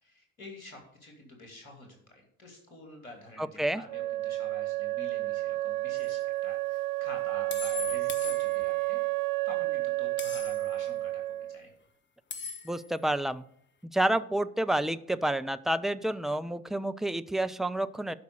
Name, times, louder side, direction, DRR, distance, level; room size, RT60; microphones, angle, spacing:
voice 1, 0.0-9.0 9.4-11.7, left 2 dB, 80° left, 2 dB, 2.6 m, -49 dB
voice 2, 3.4-3.8 12.6-13.4 13.9-18.1, right 1 dB, ahead, 11 dB, 0.4 m, -29 dB
Wind instrument woodwind instrument, 3.9-11.6, right 19 dB, 55° right, 0.6 m, -31 dB
sound 1, 6.0-6.1 7.5-8.9 10.2-10.8 12.3-13.0, left 5 dB, 25° left, 1.1 m, -40 dB
12.0 x 5.3 x 6.4 m, 0.71 s
figure-of-eight pair, 50°, 41 cm